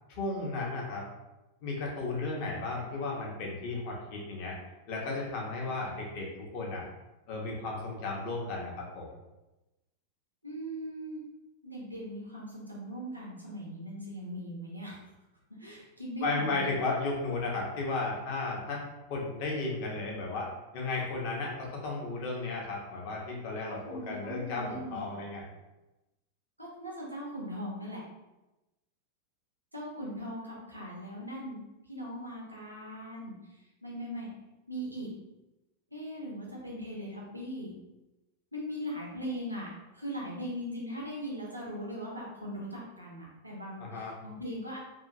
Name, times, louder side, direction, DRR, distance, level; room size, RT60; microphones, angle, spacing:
voice 1, 0.1-1.0 1.6-4.6 4.9-6.8 7.3-9.1 16.2-18.8 19.1-25.5 43.8-44.1, left 3 dB, 45° left, -2 dB, 0.8 m, -34 dB
voice 2, 10.4-11.2 11.6-15.0 15.5-16.7 23.6-25.2 26.6-28.0 29.7-31.6 31.9-34.3 34.7-35.1 35.9-37.7 38.5-44.8, equal, 85° right, -3 dB, 0.7 m, -40 dB
2.7 x 2.5 x 2.5 m, 1.0 s
figure-of-eight pair, 90°, 0 cm